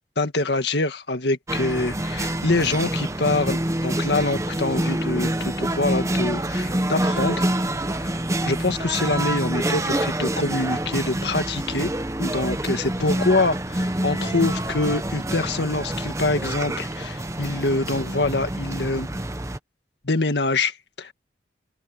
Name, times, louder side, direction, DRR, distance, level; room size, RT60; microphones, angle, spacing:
voice 1, 0.2-7.5 7.9-11.9 12.2-19.1 20.0-21.1, left 2 dB, 70° left, 1.8 m, -25 dB
sound 1, 1.5-19.6, right 1 dB, 15° right, 1.0 m, -26 dB
open air
head